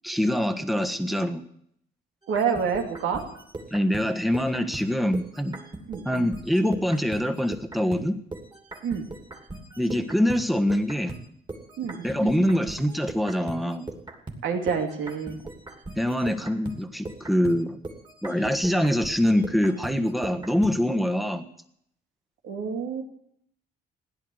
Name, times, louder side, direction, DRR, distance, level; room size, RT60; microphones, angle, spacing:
voice 1, 0.0-1.4 3.7-5.6 6.0-8.2 9.8-11.2 12.0-13.9 16.0-17.8 18.2-21.5, equal, ahead, 8 dB, 1.4 m, -24 dB
sound 1, 2.2-8.1 8.3-20.8, right 2 dB, 25° right, 3.0 m, -40 dB
voice 2, 2.3-3.2 5.9-6.0 8.8-9.1 11.8-12.4 14.4-15.4 22.4-23.0, right 6 dB, 80° right, 3 dB, 2.8 m, -28 dB
16.5 x 10.5 x 8.0 m, 0.70 s
cardioid pair, 90°, 20 cm